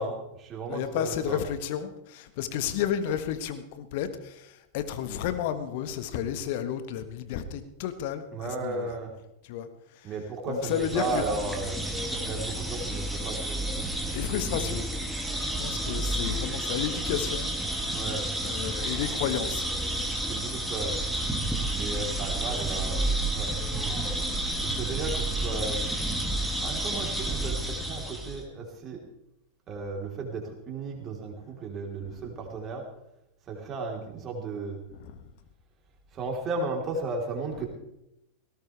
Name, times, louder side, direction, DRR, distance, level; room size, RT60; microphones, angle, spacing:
voice 1, 0.0-1.4 8.3-9.1 10.0-11.8 12.1-13.9 15.4-15.6 17.9-18.3 20.3-21.0 21.7-23.5 24.6-26.0 26.6-29.0 29.7-32.8 33.5-34.8 36.1-37.7, right 3 dB, 30° right, 1 dB, 3.7 m, -34 dB
voice 2, 0.7-9.0 9.4-10.1 10.5-11.2 14.1-14.9 15.4-17.6 18.4-19.7 20.0-20.1 24.3-24.6 35.0-35.2 37.5-37.7, left 9 dB, 50° left, 10 dB, 1.4 m, -32 dB
sound 1, 10.6-28.4, right 1 dB, ahead, 2.6 m, -30 dB
18.5 x 17.0 x 3.4 m, 0.86 s
figure-of-eight pair, 90°, 0 cm